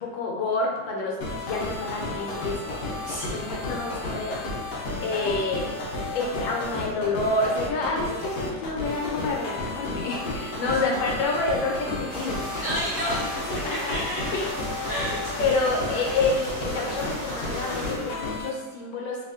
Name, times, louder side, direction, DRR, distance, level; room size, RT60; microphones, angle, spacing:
voice 1, 0.0-4.4 5.0-5.8 6.1-12.6 13.2-14.0 14.3-14.5 15.4-19.3, left 3 dB, 85° left, -1 dB, 1.4 m, -28 dB
sound 1, 1.2-18.5, left 2 dB, 70° left, 1.1 m, -32 dB
voice 2, 3.0-3.5 4.9-5.3 10.6-10.9 12.6-13.4 13.7-14.3 14.9-15.6, equal, 30° right, -13 dB, 1.3 m, -32 dB
sound 2, 12.1-17.9, equal, 50° right, 0.6 m, -37 dB
3.3 x 2.9 x 2.4 m, 1.3 s
omnidirectional pair, 2.0 m